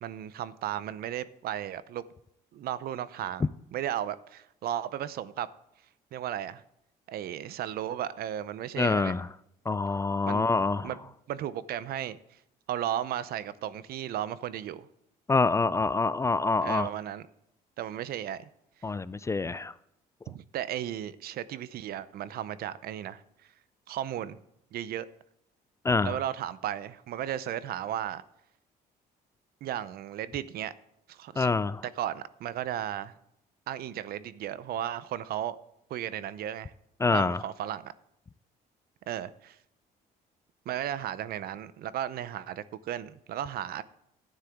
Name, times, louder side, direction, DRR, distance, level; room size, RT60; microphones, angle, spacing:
voice 1, 0.0-2.0 2.5-5.5 6.1-6.6 7.1-9.2 10.3-10.5 10.8-11.0 11.3-12.2 12.7-14.9 16.6-17.3 17.8-18.4 20.3-23.2 23.9-24.4 24.7-25.1 26.0-28.2 29.6-30.7 31.1-31.5 31.8-33.1 33.7-35.6 35.9-36.7 37.1-37.9 39.1-39.6 40.7-43.8, right 11 dB, 65° right, 0.6 m, -35 dB
voice 2, 8.8-9.3 9.7-10.9 15.3-16.9 18.8-19.7 25.8-26.1 31.4-31.8 37.0-37.4, left 3 dB, 15° left, 0.3 m, -26 dB
11.5 x 9.7 x 3.6 m
cardioid pair, 110°, 17 cm